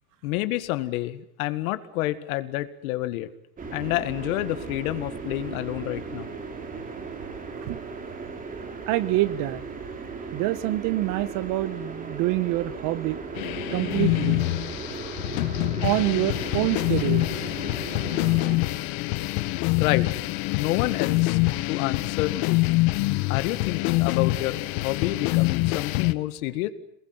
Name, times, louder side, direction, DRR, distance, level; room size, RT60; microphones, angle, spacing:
voice 1, 0.2-3.3 3.7-6.3 19.8-20.1 20.5-21.4 21.7-22.6 23.3-26.7, left 16 dB, 65° left, 12 dB, 2.0 m, -28 dB
sound 1, 3.6-18.6, right 4 dB, 20° right, 3.2 m, -37 dB
voice 2, 8.9-9.6 10.3-13.2 13.7-14.4 15.8-17.3, right 16 dB, 45° right, 16 dB, 1.4 m, -26 dB
sound 2, 13.4-26.1, left 20 dB, 50° left, 1.3 m, -25 dB
27.5 x 20.5 x 9.6 m, 0.77 s
supercardioid pair, 155°, 44 cm